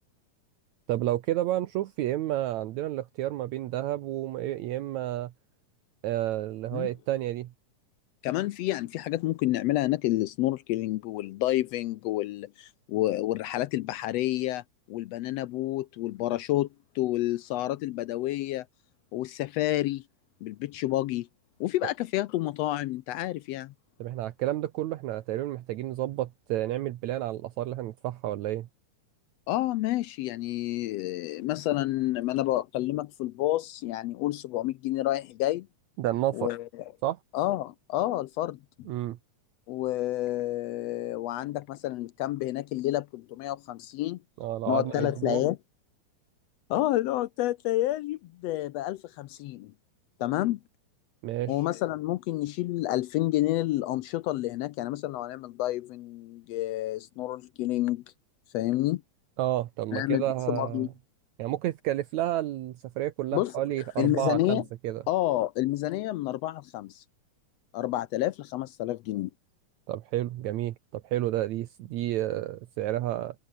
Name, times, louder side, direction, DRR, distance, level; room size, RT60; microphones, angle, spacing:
voice 1, 0.9-5.3 6.0-7.5 24.0-28.7 36.0-36.5 37.0-37.2 38.9-39.2 44.4-45.5 51.2-51.6 59.4-60.8 61.4-65.0 69.9-73.4, right 14 dB, 70° right, 2.1 m, -30 dB
voice 2, 8.2-14.6 14.9-16.7 16.9-18.7 19.1-20.0 20.4-21.3 21.6-23.7 29.5-35.7 36.3-36.7 37.3-38.6 39.7-44.2 44.7-45.6 46.7-49.7 50.2-50.6 51.5-58.0 58.5-59.0 59.9-60.9 63.3-63.5 64.0-64.6 65.1-67.0 67.7-69.3, left 15 dB, 80° left, 1.4 m, -29 dB
omnidirectional pair, 3.6 m